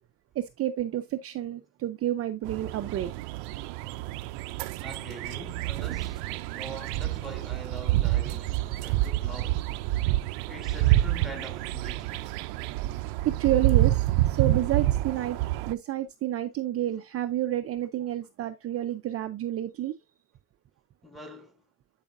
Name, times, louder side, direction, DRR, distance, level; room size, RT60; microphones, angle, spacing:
voice 1, 0.4-3.1 13.2-15.4 15.6-19.9, right 12 dB, 40° right, 0.5 m, -29 dB
sound 1, 2.4-15.7, right 16 dB, 90° right, 0.6 m, -28 dB
voice 2, 4.8-9.7 10.5-12.3 21.0-21.6, right 1 dB, ahead, 1.6 m, -44 dB
10.5 x 4.9 x 2.5 m
cardioid pair, 120°, 37 cm